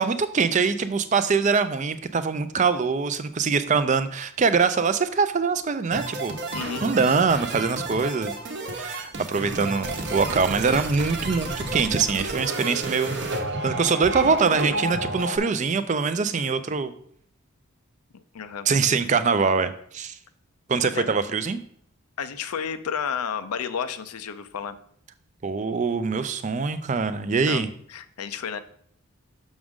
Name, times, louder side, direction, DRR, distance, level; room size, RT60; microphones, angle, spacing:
voice 1, 0.0-6.3 6.8-8.3 8.7-13.2 13.6-16.9 18.7-20.2 20.7-21.6 25.4-27.7, right 5 dB, 35° right, 11 dB, 0.4 m, -23 dB
sound 1, 5.9-15.4, right 2 dB, 55° right, 0.9 m, -31 dB
voice 2, 6.5-6.8 18.3-18.7 20.9-21.1 22.2-24.8 27.5-28.6, left 7 dB, 90° left, 12 dB, 0.5 m, -31 dB
6.2 x 6.1 x 3.6 m, 0.63 s
head